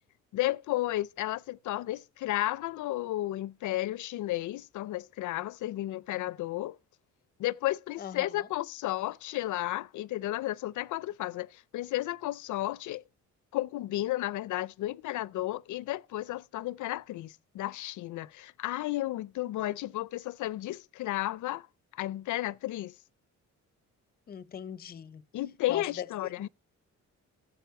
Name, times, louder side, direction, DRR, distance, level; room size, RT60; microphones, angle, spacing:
voice 1, 0.3-6.8 7.4-13.0 13.5-21.7 22.0-22.9 25.3-26.5, left 15 dB, 85° left, 0.5 m, -33 dB
voice 2, 8.0-8.5 24.3-25.2 25.7-26.1 26.4-26.5, left 9 dB, 30° left, 0.5 m, -40 dB
15.0 x 7.5 x 4.6 m
wide cardioid pair, 170°, 29 cm